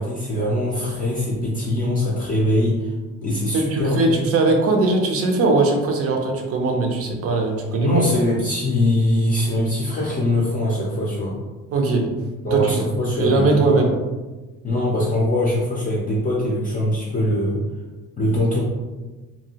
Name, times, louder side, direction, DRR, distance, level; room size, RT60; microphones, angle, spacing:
voice 1, 0.0-2.9 3.2-4.2 7.8-11.3 12.4-13.7 14.6-17.6 18.2-18.6, left 1 dB, 25° left, -5 dB, 0.5 m, -22 dB
voice 2, 3.5-8.0 11.7-12.1 12.5-12.8 13.2-13.9, right 3 dB, 45° right, 2 dB, 0.5 m, -20 dB
2.7 x 2.5 x 2.8 m, 1.2 s
cardioid pair, 145°, 34 cm